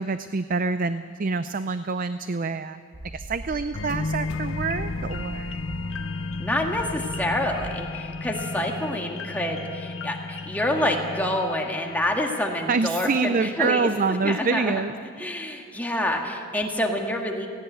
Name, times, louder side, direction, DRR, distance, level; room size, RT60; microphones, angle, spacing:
voice 1, 0.0-2.8 3.1-5.6 12.7-15.4, right 4 dB, 40° right, 11 dB, 0.5 m, -26 dB
sound 1, 2.9-8.3, right 1 dB, 80° right, 3.7 m, -40 dB
sound 2, 3.7-13.1 13.5-13.6, left 3 dB, 70° left, 0.9 m, -33 dB
voice 2, 6.4-13.9 14.2-14.8 15.2-17.5, left 1 dB, 10° left, 1 dB, 1.8 m, -27 dB
17.5 x 17.0 x 9.1 m, 2.1 s
head